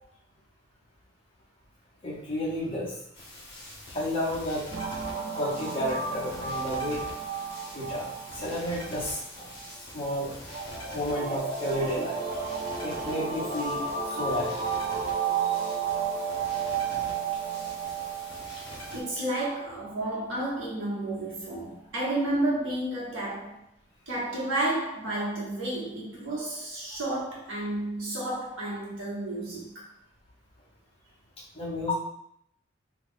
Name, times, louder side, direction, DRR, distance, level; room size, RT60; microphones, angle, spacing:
voice 1, 2.0-2.9 3.9-4.6 5.3-7.0 7.7-8.1 8.3-9.5 9.9-10.3 10.9-12.2 12.8-13.8 14.1-14.7 31.5-31.9, left 1 dB, 30° left, -8 dB, 1.1 m, -31 dB
sound 1, 3.1-19.0, left 1 dB, 55° left, 1.1 m, -44 dB
sound 2, 4.7-20.0, right 6 dB, 50° right, 0.4 m, -33 dB
voice 2, 18.9-23.6 24.1-29.9, right 1 dB, 80° right, -5 dB, 1.2 m, -31 dB
2.9 x 2.4 x 3.6 m, 0.72 s
head